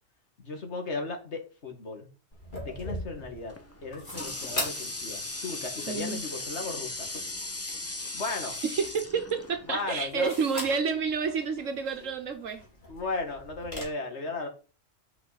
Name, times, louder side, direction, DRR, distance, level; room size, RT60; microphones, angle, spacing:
voice 1, 0.4-2.1 2.6-3.5 3.8-7.1 8.1-8.6 9.7-10.3 12.9-14.5, left 3 dB, 60° left, 4 dB, 2.0 m, -35 dB
sound 1, 2.3-13.8, left 1 dB, 40° left, 3.7 m, -42 dB
Water tap faucet, 3.5-10.0, left 2 dB, 15° left, 0.6 m, -38 dB
voice 2, 5.9-6.2 8.6-12.6, right 5 dB, 75° right, 7 dB, 1.4 m, -29 dB
8.4 x 5.5 x 5.7 m, 0.36 s
omnidirectional pair, 1.3 m